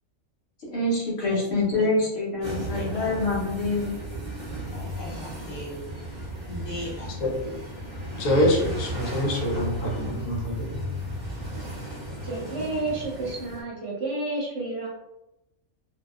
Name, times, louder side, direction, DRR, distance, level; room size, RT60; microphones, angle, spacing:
voice 1, 0.7-3.9, left 2 dB, 55° left, -5 dB, 0.9 m, -26 dB
voice 2, 2.4-3.1 4.7-5.9 6.4-7.1, equal, 25° left, -6 dB, 0.6 m, -38 dB
sound 1, 2.4-13.6, equal, 10° left, 0.9 m, -35 dB
voice 3, 7.2-7.6 8.2-10.9, left 1 dB, 80° left, 0 dB, 1.0 m, -25 dB
voice 4, 12.2-14.9, right 2 dB, 60° right, -4 dB, 0.8 m, -30 dB
2.7 x 2.2 x 2.3 m, 0.91 s
omnidirectional pair, 1.5 m